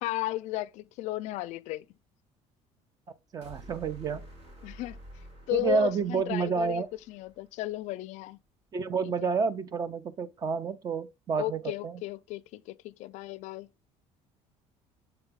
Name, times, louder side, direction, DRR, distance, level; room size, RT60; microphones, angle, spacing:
voice 1, 0.0-1.9 4.6-5.0 5.5-8.4 9.0-9.1 11.4-13.7, left 17 dB, 65° left, 0.4 m, -34 dB
voice 2, 3.3-4.2 5.5-6.9 8.7-12.0, right 5 dB, 30° right, 0.5 m, -29 dB
sound 1, 3.4-7.7, equal, 50° right, 2.6 m, -50 dB
6.9 x 4.0 x 3.5 m
cardioid pair, 160°, 13 cm